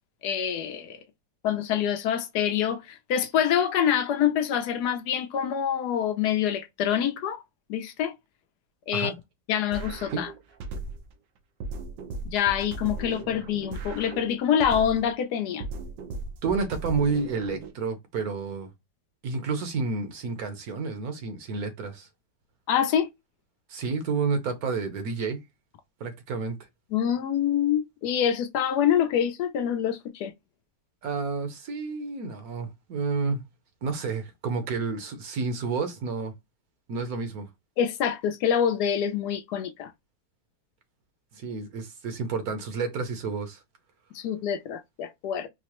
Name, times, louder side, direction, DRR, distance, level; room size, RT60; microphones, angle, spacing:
voice 1, 0.2-1.0 1.4-7.4 7.7-8.1 8.9-9.1 9.5-10.3 12.3-15.6 22.7-23.1 26.9-30.3 37.8-39.9 44.1-45.5, left 9 dB, 75° left, 1.1 m, -26 dB
sound 1, 9.7-11.1 11.6-15.1 15.6-17.7, right 3 dB, 90° right, 1.4 m, -37 dB
voice 2, 16.4-18.7 19.2-22.1 23.7-25.4 26.0-26.6 31.0-33.4 33.8-36.3 36.9-37.5 41.3-43.6, right 4 dB, 65° right, 1.2 m, -30 dB
4.7 x 2.0 x 2.9 m
omnidirectional pair, 1.8 m